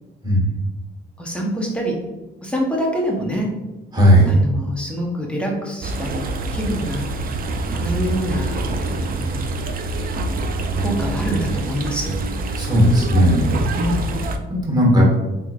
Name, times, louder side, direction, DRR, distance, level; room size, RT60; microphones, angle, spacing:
voice 1, 1.2-2.0 2.4-3.5 4.3-6.3 6.5-7.1 7.7-9.4 10.8-12.2 13.8-14.0, equal, 5° left, -1 dB, 1.0 m, -25 dB
voice 2, 3.9-4.4 12.5-13.6 14.5-15.2, equal, 20° right, -3 dB, 1.4 m, -15 dB
sound 1, 5.8-14.4, right 2 dB, 45° right, 0.4 m, -25 dB
3.6 x 3.1 x 2.5 m, 1.1 s
cardioid pair, 90°, 20 cm